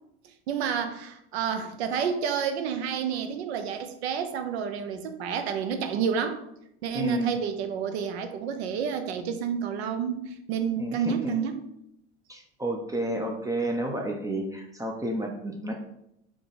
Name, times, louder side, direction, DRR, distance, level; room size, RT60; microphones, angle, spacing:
voice 1, 0.5-6.4 6.8-11.7, right 7 dB, 85° right, 8 dB, 0.7 m, -30 dB
voice 2, 6.9-7.4 10.8-11.4 12.3-15.8, right 1 dB, 10° right, 2 dB, 0.6 m, -31 dB
3.8 x 3.1 x 3.8 m, 0.79 s
supercardioid pair, 110°, 31 cm